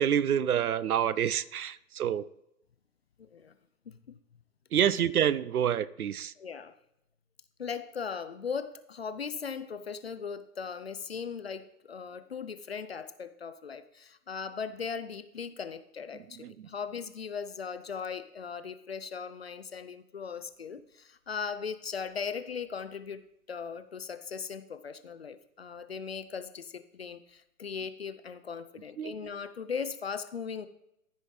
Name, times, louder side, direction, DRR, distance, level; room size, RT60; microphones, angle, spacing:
voice 1, 0.0-2.3 4.7-6.3 16.4-16.5 29.0-29.2, right 9 dB, 65° right, 19 dB, 0.5 m, -27 dB
voice 2, 3.2-3.5 3.9-4.2 6.4-6.7 7.6-23.2 23.5-30.7, left 6 dB, 45° left, 12 dB, 0.4 m, -38 dB
14.5 x 5.5 x 3.2 m, 0.82 s
figure-of-eight pair, 125°, 48 cm